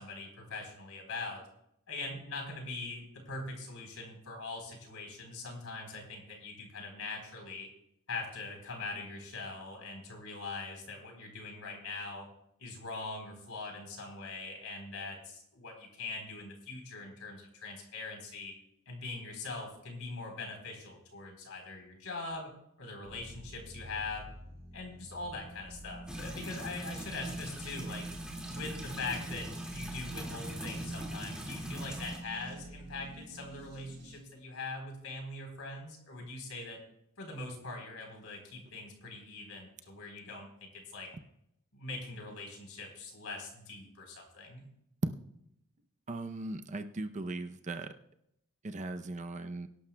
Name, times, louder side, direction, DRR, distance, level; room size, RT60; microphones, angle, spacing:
voice 1, 0.0-1.4 1.9-7.7 8.1-12.3 12.6-18.5 18.9-22.5 22.8-24.3 24.7-28.0 28.5-36.8 37.2-41.1 41.7-44.7, left 3 dB, 70° left, 2 dB, 3.8 m, -42 dB
sound 1, 23.0-34.2, right 2 dB, 50° right, 5.2 m, -47 dB
sound 2, 26.1-32.2, right 1 dB, 5° right, 2.1 m, -41 dB
voice 2, 46.1-47.9 48.6-49.7, right 2 dB, 35° right, 8 dB, 0.6 m, -37 dB
23.0 x 11.5 x 2.2 m, 0.79 s
head